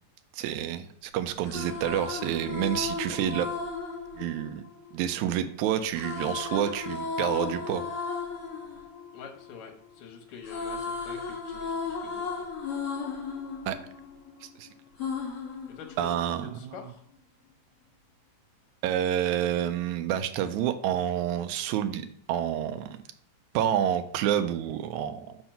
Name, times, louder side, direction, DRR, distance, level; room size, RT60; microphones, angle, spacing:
voice 1, 0.3-3.5 4.2-4.7 4.9-7.8 13.7-13.8 14.6-14.7 16.0-16.7 18.8-23.0 23.5-25.4, right 10 dB, 85° right, 9 dB, 1.9 m, -28 dB
sound 1, 1.2-5.3 5.9-10.0 10.2-14.5 15.0-16.4, left 4 dB, 40° left, 2.3 m, -35 dB
voice 2, 9.1-12.2 15.8-17.0, left 6 dB, 60° left, 3 dB, 1.7 m, -46 dB
4.7 x 4.4 x 5.5 m, 0.65 s
omnidirectional pair, 3.3 m